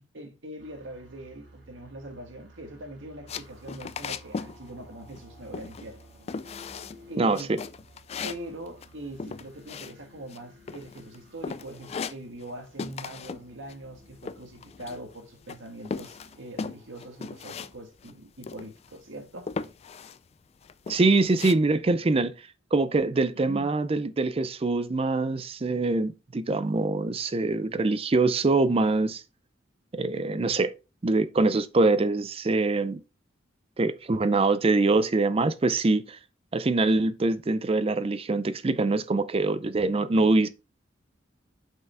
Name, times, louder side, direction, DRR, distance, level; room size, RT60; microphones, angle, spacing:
voice 1, 0.0-6.1 7.1-7.5 8.2-19.5 23.3-23.7, right 1 dB, 80° right, 1.7 m, -42 dB
sound 1, 0.6-17.7, right 1 dB, 65° right, 3.2 m, -54 dB
sound 2, 3.3-4.6 4.8-5.3 5.5-6.0 6.3-7.0 7.3-10.4 10.7-11.2 11.4-12.5 12.8-13.4 13.7-15.2 15.5-17.7 18.0-18.1 18.4-19.0 19.5-20.2 20.6-21.5, left 5 dB, 35° left, 0.3 m, -37 dB
voice 2, 7.2-7.6 20.9-22.3 22.7-29.2 29.9-30.7 31.0-33.0 33.8-36.2 36.5-40.5, right 3 dB, 30° right, 0.4 m, -24 dB
5.9 x 5.6 x 3.5 m
head